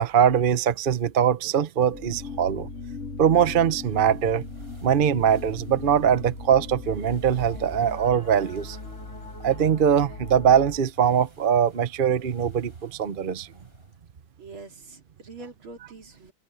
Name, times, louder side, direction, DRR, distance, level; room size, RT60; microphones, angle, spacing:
voice 1, 0.0-2.7 3.2-4.4 4.8-8.8 9.4-13.5, right 8 dB, 45° right, 0.7 m, -22 dB
sound 1, 1.9-10.8, left 3 dB, 35° left, 3.7 m, -38 dB
sound 2, 3.7-14.0, right 1 dB, 25° right, 6.7 m, -54 dB
voice 2, 14.4-16.3, right 3 dB, 85° right, 3.8 m, -44 dB
omnidirectional pair, 2.2 m